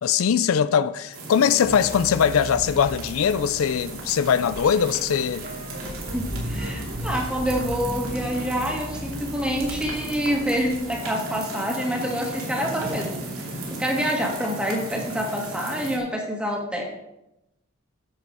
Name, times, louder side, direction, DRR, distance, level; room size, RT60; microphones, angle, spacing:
voice 1, 0.0-5.5, left 7 dB, 80° left, 0.4 m, -21 dB
sound 1, 1.1-16.0, right 2 dB, 85° right, 2.9 m, -36 dB
sound 2, 1.6-10.9, equal, 45° right, 1.5 m, -36 dB
voice 2, 6.1-13.2 13.8-16.8, equal, 5° right, 1.8 m, -27 dB
10.5 x 7.6 x 4.7 m
head